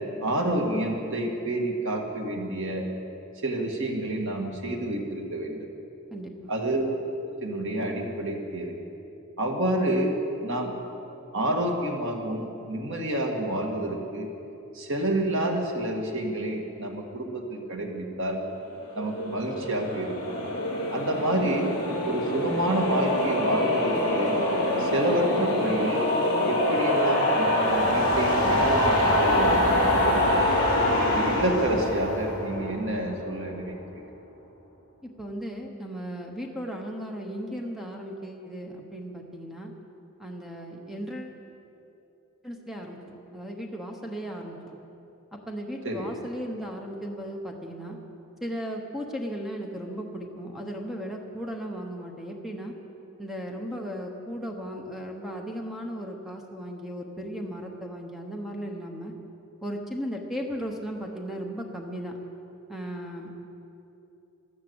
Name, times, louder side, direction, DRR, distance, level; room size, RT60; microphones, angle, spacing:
voice 1, 0.2-2.9 3.4-5.7 6.5-6.9 7.3-8.8 9.4-10.7 11.3-14.3 14.7-18.4 19.0-20.2 20.9-21.7 22.0-24.4 24.8-26.1 26.4-30.6 31.1-34.0 45.8-46.1, right 1 dB, 60° right, 1 dB, 2.0 m, -29 dB
voice 2, 6.1-6.5 35.0-39.7 40.2-41.4 42.4-44.8 45.3-48.0 48.4-52.7 53.2-59.1 59.6-62.2 62.7-63.5, equal, ahead, 1 dB, 1.1 m, -36 dB
sound 1, 19.0-33.3, left 1 dB, 60° left, 4.5 m, -25 dB
13.5 x 12.0 x 7.9 m, 2.9 s
head